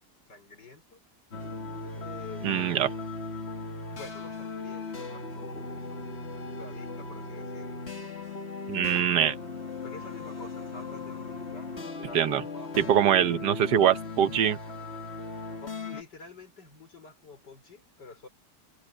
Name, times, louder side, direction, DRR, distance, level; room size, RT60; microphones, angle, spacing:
voice 1, 0.3-1.0 1.9-2.7 3.9-6.0 6.5-7.8 9.8-13.2 13.5-13.6 15.6-18.3, left 3 dB, 90° left, 5.6 m, -48 dB
sound 1, 1.3-16.0, left 3 dB, 40° left, 2.3 m, -38 dB
voice 2, 2.4-2.9 8.7-9.4 12.1-12.4 12.8-14.6, right 10 dB, 80° right, 1.6 m, -23 dB
omnidirectional pair, 1.8 m